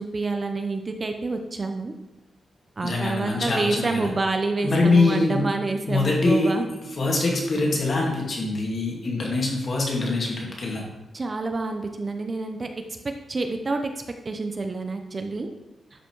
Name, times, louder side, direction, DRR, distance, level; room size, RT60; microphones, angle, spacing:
voice 1, 0.0-1.9 2.8-6.7 11.1-12.7 13.0-13.9 14.2-15.5, right 3 dB, 30° right, 5 dB, 0.7 m, -28 dB
voice 2, 2.8-4.1 4.6-5.5 5.9-6.5 7.0-10.8, left 3 dB, 45° left, -1 dB, 2.2 m, -23 dB
11.5 x 5.8 x 4.6 m, 1.0 s
wide cardioid pair, 175°, 0 cm